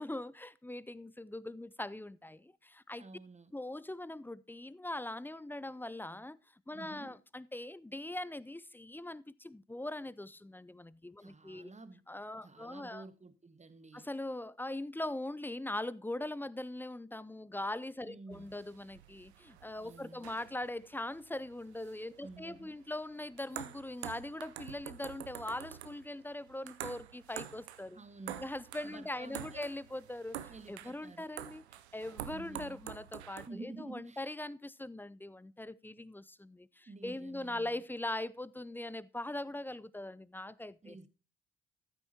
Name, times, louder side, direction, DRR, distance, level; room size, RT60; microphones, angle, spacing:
voice 1, 0.0-3.0 3.5-11.7 12.1-13.1 13.9-28.0 28.4-31.6 31.9-41.0, left 1 dB, 5° left, 0.5 m, -41 dB
voice 2, 3.0-3.5 6.7-7.2 11.2-12.0 12.4-14.1 18.0-18.5 19.8-20.3 22.2-22.8 27.9-28.5 28.8-29.7 30.5-31.3 32.3-32.8 33.5-34.4 36.9-37.8 40.8-41.1, right 2 dB, 20° right, 1.4 m, -50 dB
sound 1, 18.3-33.5, right 12 dB, 85° right, 0.6 m, -48 dB
13.5 x 8.2 x 2.8 m
figure-of-eight pair, 40°, 32 cm